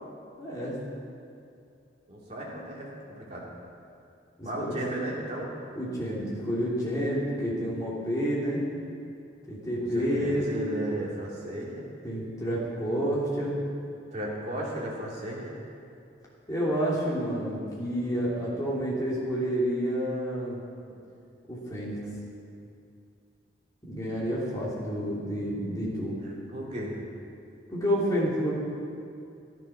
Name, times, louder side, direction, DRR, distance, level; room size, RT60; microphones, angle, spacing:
voice 1, 0.4-0.7 4.4-4.8 5.7-8.6 9.5-10.5 12.0-13.6 16.5-20.6 21.5-22.0 23.8-26.2 27.7-28.5, equal, 20° left, -6 dB, 3.0 m, -29 dB
voice 2, 2.1-3.5 4.4-5.5 9.9-11.8 14.1-15.5 26.2-27.0, right 1 dB, 35° right, -5 dB, 2.8 m, -34 dB
12.5 x 10.5 x 6.0 m, 2.5 s
head